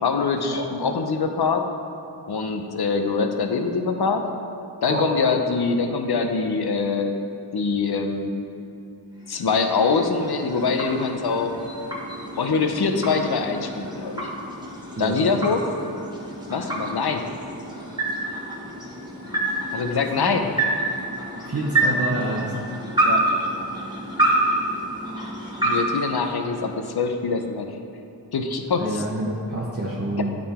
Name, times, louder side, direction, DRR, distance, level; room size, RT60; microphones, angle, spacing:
voice 1, 0.0-1.6 2.3-4.3 4.8-7.2 7.5-8.4 9.3-11.7 12.4-14.3 15.0-15.7 16.5-17.3 19.7-20.5 23.0-23.2 25.6-27.8 28.3-29.0, left 4 dB, 60° left, 5 dB, 0.7 m, -24 dB
sound 1, 9.1-26.9, right 2 dB, 10° right, 1.5 m, -28 dB
voice 2, 15.0-15.3 20.2-20.3 21.5-22.5 28.8-30.4, right 1 dB, 35° right, -4 dB, 0.9 m, -27 dB
9.1 x 3.8 x 4.3 m, 2.7 s
cardioid pair, 40°, 43 cm